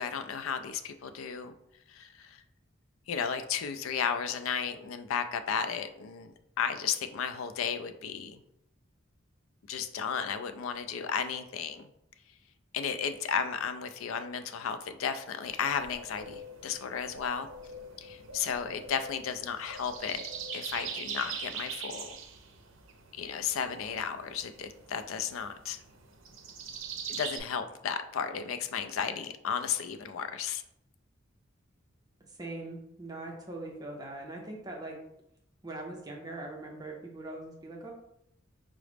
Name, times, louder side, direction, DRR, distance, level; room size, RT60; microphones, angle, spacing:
voice 1, 0.0-1.5 1.9-2.4 3.1-8.4 9.7-11.9 12.7-17.5 18.0-20.2 20.5-22.2 23.1-25.8 27.1-30.6, left 7 dB, 85° left, 9 dB, 0.4 m, -34 dB
sound 1, 15.4-27.4, right 5 dB, 75° right, 0.5 m, -43 dB
voice 2, 32.3-35.0 35.6-37.9, right 2 dB, 20° right, -1 dB, 0.5 m, -41 dB
4.7 x 2.0 x 3.3 m, 0.77 s
head